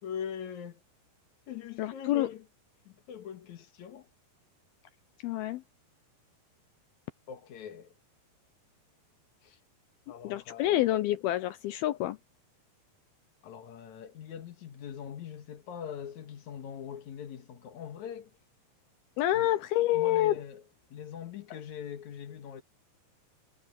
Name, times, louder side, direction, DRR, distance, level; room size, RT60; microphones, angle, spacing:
voice 1, 0.0-0.8 1.5-2.4 2.9-4.1 7.3-7.9 9.4-9.6 10.1-10.9 13.4-18.3 19.3-19.5 19.9-20.6 20.9-22.6, left 8 dB, 55° left, 2.5 m, -42 dB
voice 2, 1.8-2.3 5.2-5.6 10.2-12.2 19.2-20.4, left 14 dB, 80° left, 2.3 m, -27 dB
omnidirectional pair, 5.1 m